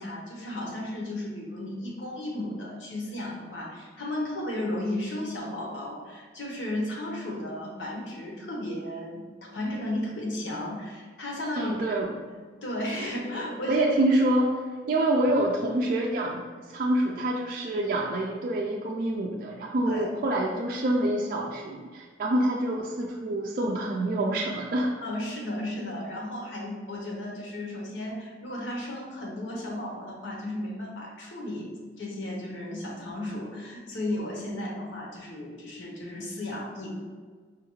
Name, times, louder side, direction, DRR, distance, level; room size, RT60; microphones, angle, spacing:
voice 1, 0.0-11.7 12.3-13.8 19.9-20.1 25.0-37.1, left 1 dB, 80° left, -2 dB, 0.9 m, -34 dB
voice 2, 11.6-12.1 13.7-14.6 14.9-25.0, right 1 dB, 50° right, -2 dB, 0.3 m, -26 dB
4.9 x 2.3 x 3.0 m, 1.5 s
head